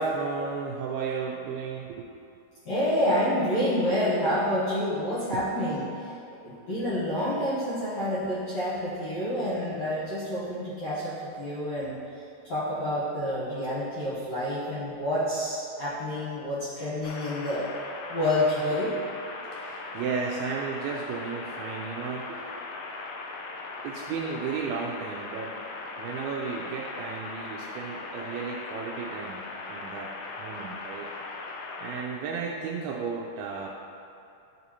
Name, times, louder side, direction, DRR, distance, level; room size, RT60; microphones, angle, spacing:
voice 1, 0.0-2.1 5.3-5.4 19.4-22.7 23.8-25.7 26.0-31.1 31.8-33.7, right 5 dB, 80° right, -1 dB, 2.2 m, -34 dB
voice 2, 2.6-5.9 6.3-12.0 12.5-17.7 18.1-18.9, left 1 dB, 70° left, -12 dB, 1.6 m, -28 dB
sound 1, 17.0-32.0, left 3 dB, 90° left, 1.9 m, -39 dB
11.0 x 4.1 x 2.9 m, 2.7 s
omnidirectional pair, 4.7 m